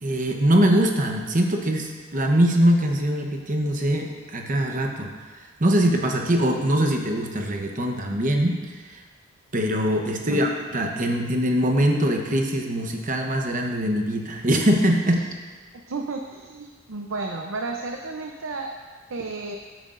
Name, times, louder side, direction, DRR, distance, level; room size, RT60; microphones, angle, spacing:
voice 1, 0.0-5.1 5.6-8.6 8.9-9.0 9.5-15.2, equal, 40° right, 2 dB, 1.0 m, -22 dB
voice 2, 10.1-10.4 15.9-18.7 19.1-19.6, right 3 dB, 70° right, 2 dB, 0.7 m, -32 dB
13.5 x 9.3 x 2.6 m, 1.4 s
head